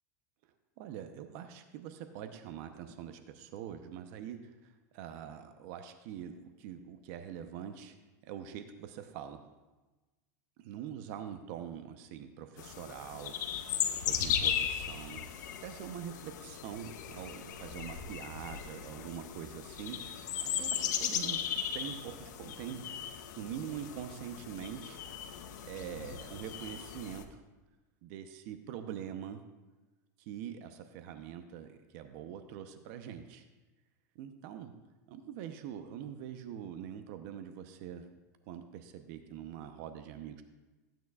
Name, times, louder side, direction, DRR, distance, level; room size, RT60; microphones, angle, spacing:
voice 1, 0.4-8.0 8.2-9.4 10.6-15.2 15.6-20.0 20.5-25.0 25.6-27.4 28.0-29.4 30.2-33.5 34.1-34.8 35.1-38.1 38.5-40.4, right 9 dB, 55° right, 8 dB, 0.8 m, -44 dB
sound 1, 12.6-27.2, left 9 dB, 80° left, 0.8 m, -37 dB
14.5 x 9.0 x 2.4 m, 1.2 s
supercardioid pair, 135°, 10 cm